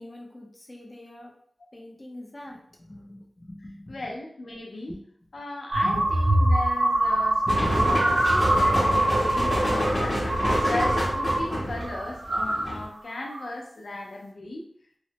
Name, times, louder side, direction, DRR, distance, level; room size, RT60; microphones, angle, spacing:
voice 1, 0.0-1.3 1.7-4.0 4.9-5.0 5.8-6.1 7.5-7.9, left 1 dB, 30° left, -1 dB, 0.6 m, -41 dB
voice 2, 3.9-5.0 5.3-14.7, left 2 dB, 85° left, -1 dB, 0.6 m, -37 dB
sound 1, 5.7-11.5 11.8-12.7 13.2-13.5, right 1 dB, 75° right, 0.7 m, -24 dB
sound 2, 7.5-12.9, equal, 50° left, 1.0 m, -27 dB
3.1 x 2.1 x 2.8 m, 0.64 s
wide cardioid pair, 85°, 0 cm